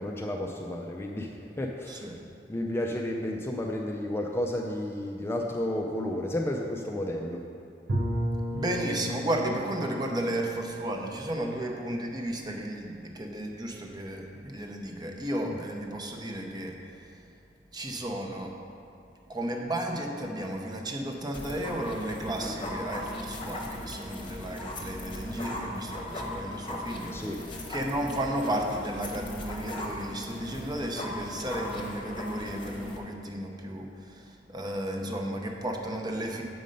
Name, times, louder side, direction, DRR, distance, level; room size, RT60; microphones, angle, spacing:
voice 1, 0.0-2.1 2.5-7.4 15.4-15.6 27.1-27.4, left 1 dB, 15° left, 0 dB, 0.4 m, -32 dB
voice 2, 1.9-2.2 8.5-16.8 17.7-18.6 19.3-27.3 27.7-36.4, right 1 dB, 25° right, 1 dB, 0.7 m, -33 dB
Bowed string instrument, 7.9-12.7, equal, 90° right, 0.9 m, -35 dB
sound 1, 21.3-33.0, left 1 dB, 30° left, 1.0 m, -38 dB
7.6 x 5.2 x 5.2 m, 2.6 s
head